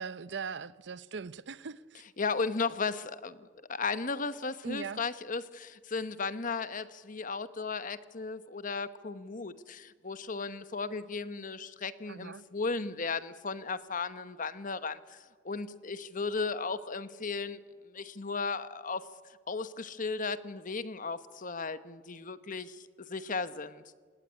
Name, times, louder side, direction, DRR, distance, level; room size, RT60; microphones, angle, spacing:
voice 1, 0.0-2.0 4.6-5.0 12.1-12.4, right 5 dB, 65° right, 0.7 m, -40 dB
voice 2, 2.2-17.6 17.8-19.1 19.5-23.8, left 4 dB, 45° left, 1.1 m, -35 dB
26.5 x 18.5 x 9.9 m
head